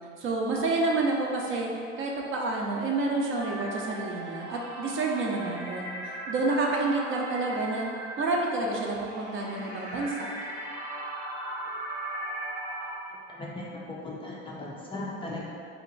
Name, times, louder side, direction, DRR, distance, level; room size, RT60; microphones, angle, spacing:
voice 1, 0.2-1.7 2.0-5.9 6.3-7.9 8.2-10.3, right 3 dB, 40° right, -1 dB, 0.6 m, -29 dB
sound 1, 3.4-13.0, right 1 dB, 90° right, 0.7 m, -38 dB
voice 2, 13.1-15.5, left 2 dB, 15° left, -5 dB, 0.4 m, -38 dB
2.9 x 2.4 x 3.7 m, 2.3 s
hypercardioid pair, 75°, 33 cm